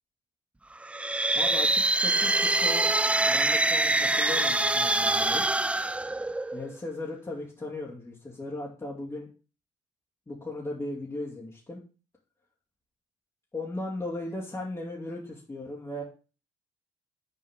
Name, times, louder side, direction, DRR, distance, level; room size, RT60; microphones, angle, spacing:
sound 1, 0.8-6.8, right 2 dB, 10° right, 0.4 m, -25 dB
voice 1, 1.3-2.9 3.2-5.5 6.5-9.3 10.3-11.8 13.5-16.0, left 2 dB, 20° left, -4 dB, 2.7 m, -37 dB
7.0 x 4.7 x 6.2 m, 0.35 s
hypercardioid pair, 60°, 14 cm